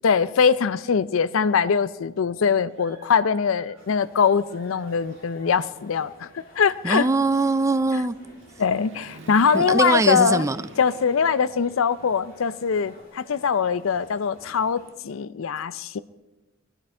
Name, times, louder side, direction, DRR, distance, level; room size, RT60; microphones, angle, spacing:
voice 1, 0.0-7.1 8.6-10.4 10.8-16.0, left 6 dB, 80° left, 16 dB, 0.5 m, -22 dB
Human voice / Motorcycle, 1.7-1.8 2.3-4.1 4.4-13.0, right 2 dB, 60° right, 1.6 m, -50 dB
sound 1, 3.8-14.9, left 1 dB, 45° left, 2.7 m, -52 dB
voice 2, 6.8-8.1 9.5-10.6, right 3 dB, 15° right, 13 dB, 0.4 m, -22 dB
20.5 x 12.0 x 4.4 m, 1.1 s
head